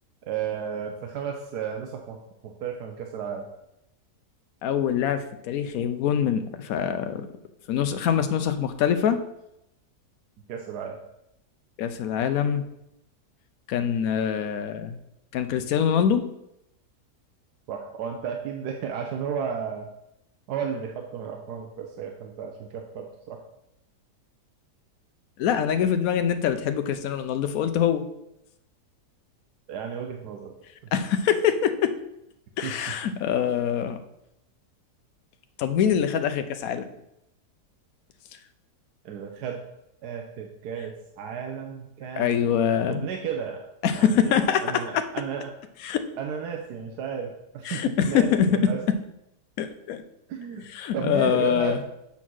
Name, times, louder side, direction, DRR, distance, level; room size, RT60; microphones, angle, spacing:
voice 1, 0.3-2.2 2.4-3.5 10.5-11.0 17.7-19.9 20.5-23.4 29.7-30.5 32.6-32.7 39.0-39.6 40.0-42.4 42.9-43.7 43.9-45.5 46.2-48.8 50.3-50.7 50.9-51.8, right 7 dB, 70° right, 2 dB, 1.2 m, -33 dB
voice 2, 4.6-7.3 7.7-9.2 11.8-12.6 13.7-15.0 15.3-16.3 25.4-28.0 30.9-31.9 32.6-34.0 35.6-36.9 42.2-43.0 43.8-45.0 45.8-46.0 47.6-48.7 49.6-50.0 50.7-51.8, left 8 dB, 65° left, 9 dB, 1.0 m, -24 dB
7.2 x 4.0 x 6.1 m, 0.84 s
omnidirectional pair, 1.8 m